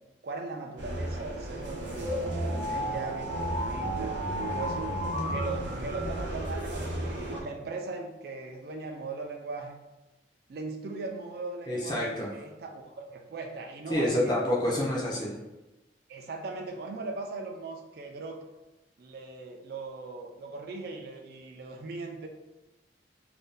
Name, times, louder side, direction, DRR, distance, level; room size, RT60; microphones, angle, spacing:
voice 1, 0.2-5.0 5.3-9.8 10.5-14.4 16.1-18.4 19.0-22.3, right 3 dB, 55° right, 2 dB, 0.3 m, -39 dB
sound 1, 0.8-7.4, right 1 dB, 75° right, 0.7 m, -32 dB
voice 2, 11.7-12.3 13.9-15.3, left 1 dB, 25° left, -5 dB, 0.5 m, -27 dB
2.6 x 2.1 x 3.6 m, 1.0 s
head